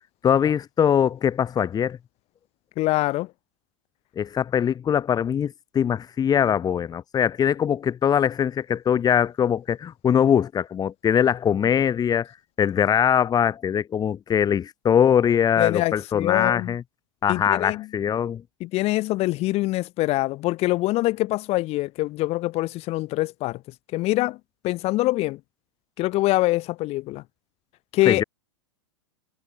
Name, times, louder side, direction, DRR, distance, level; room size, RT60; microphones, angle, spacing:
voice 1, 0.2-2.0 4.2-12.3 12.6-16.8 17.2-18.4 28.1-28.2, left 8 dB, 25° left, 4.6 m, -22 dB
voice 2, 2.8-3.3 15.6-16.7 17.3-17.9 18.6-23.6 23.9-24.4 24.6-25.4 26.0-27.2 27.9-28.2, left 18 dB, 40° left, 5.2 m, -24 dB
hypercardioid pair, 100°, 16 cm